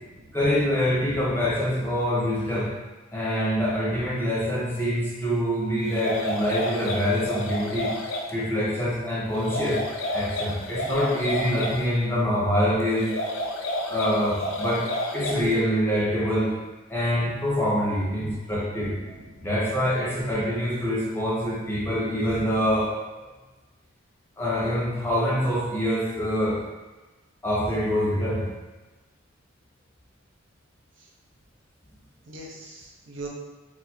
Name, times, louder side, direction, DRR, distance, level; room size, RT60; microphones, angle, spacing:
voice 1, 0.3-2.7 3.1-9.8 10.1-13.1 13.9-16.6 16.9-19.0 19.4-23.0 24.4-26.6 27.4-28.5, equal, 10° left, -7 dB, 0.7 m, -25 dB
sound 1, 5.8-8.3 9.3-11.8 13.0-15.5, left 1 dB, 80° left, 0.5 m, -30 dB
voice 2, 19.0-19.5 31.0-31.1 32.3-33.3, right 2 dB, 60° right, -3 dB, 0.6 m, -42 dB
4.3 x 2.0 x 2.7 m, 1.2 s
head